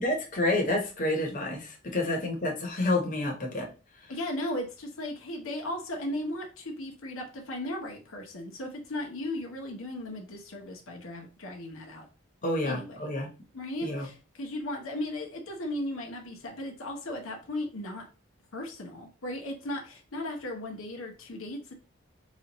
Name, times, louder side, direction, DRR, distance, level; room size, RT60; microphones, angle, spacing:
voice 1, 0.0-3.7 12.4-13.3 13.8-14.1, left 1 dB, 40° left, 0 dB, 1.0 m, -29 dB
voice 2, 4.1-12.1 12.6-13.1 13.5-18.0 18.5-21.7, left 1 dB, 75° left, 1 dB, 0.9 m, -36 dB
4.0 x 2.5 x 3.0 m, 0.33 s
head